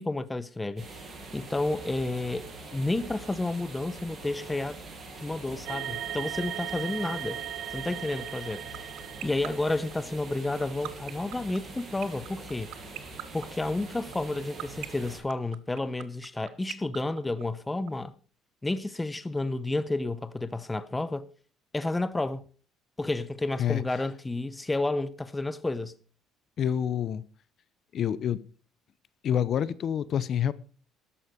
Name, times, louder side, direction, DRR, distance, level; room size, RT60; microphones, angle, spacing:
voice 1, 0.0-4.8 5.2-7.4 7.7-12.7 13.3-18.1 18.6-21.3 21.7-22.4 23.0-25.9, left 2 dB, 10° left, 0.7 m, -31 dB
sound 1, 0.8-15.2, right 3 dB, 30° right, 6.5 m, -44 dB
sound 2, 5.7-9.9, right 11 dB, 60° right, 1.1 m, -37 dB
sound 3, 8.3-17.9, right 17 dB, 75° right, 1.3 m, -37 dB
voice 2, 26.6-27.2 27.9-28.4 29.2-30.5, left 9 dB, 45° left, 0.8 m, -27 dB
13.0 x 11.0 x 5.1 m
cardioid pair, 150°, 0 cm